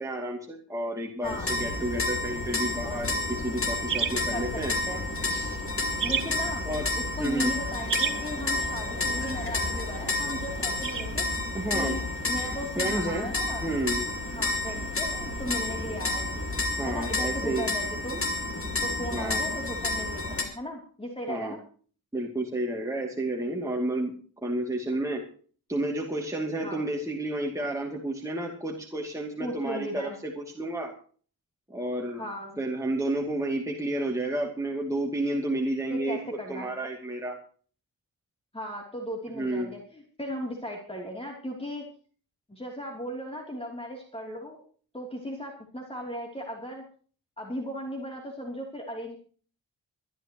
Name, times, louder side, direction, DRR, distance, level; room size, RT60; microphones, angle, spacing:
voice 1, 0.0-4.7 5.3-5.6 6.7-6.9 7.2-7.5 11.5-12.0 12.8-13.3 13.6-14.1 16.8-17.7 19.1-19.4 21.3-21.6 22.1-24.1 24.4-25.2 25.7-30.9 31.7-32.2 32.6-36.2 36.5-37.3 39.3-39.7, right 1 dB, 10° right, -1 dB, 2.5 m, -31 dB
sound 1, 1.2-20.4, left 2 dB, 35° left, 3.0 m, -30 dB
sound 2, 3.3-12.6, right 7 dB, 55° right, 1.8 m, -37 dB
voice 2, 4.3-4.6 4.9-5.0 6.0-6.6 6.9-11.3 11.7-13.6 14.3-16.5 16.8-18.3 18.8-21.6 26.6-26.8 29.4-30.2 32.2-32.6 35.9-36.7 38.5-41.8 42.5-44.6 44.9-46.8 47.4-49.2, equal, 15° left, 0 dB, 3.0 m, -37 dB
23.5 x 11.5 x 3.0 m, 0.43 s
wide cardioid pair, 125°, 38 cm